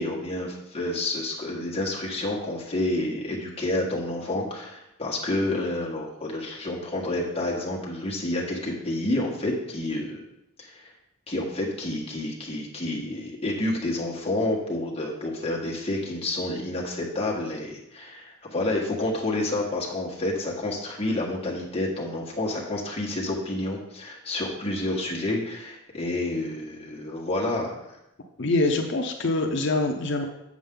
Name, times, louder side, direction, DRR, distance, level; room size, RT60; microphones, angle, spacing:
voice 1, 0.0-10.2 10.6-10.9 11.3-27.8, left 1 dB, 25° left, -3 dB, 1.6 m, -29 dB
voice 2, 28.4-30.3, left 2 dB, 55° left, 4 dB, 0.7 m, -24 dB
7.7 x 7.3 x 3.8 m, 0.86 s
head